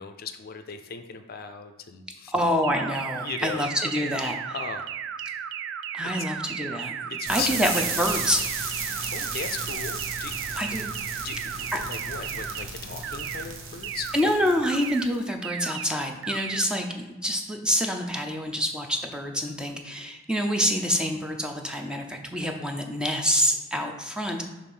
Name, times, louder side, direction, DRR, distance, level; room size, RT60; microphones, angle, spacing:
voice 1, 0.0-2.3 3.1-3.7 4.5-4.9 7.1-7.6 7.8-8.0 9.1-10.4 10.6-10.7 11.2-14.1, left 6 dB, 50° left, 7 dB, 0.4 m, -37 dB
voice 2, 2.3-4.4 5.9-6.9 7.3-8.4 10.6-10.8 11.7-11.8 14.1-24.4, equal, 5° right, 3 dB, 0.5 m, -26 dB
sound 1, 2.6-12.6 13.0-13.4 13.8-14.2 14.6-15.0 15.4-15.8 16.2-16.6, right 9 dB, 60° right, 0.3 m, -34 dB
sound 2, 7.3-15.2, right 4 dB, 85° right, 0.9 m, -34 dB
7.0 x 2.5 x 5.5 m, 1.1 s
head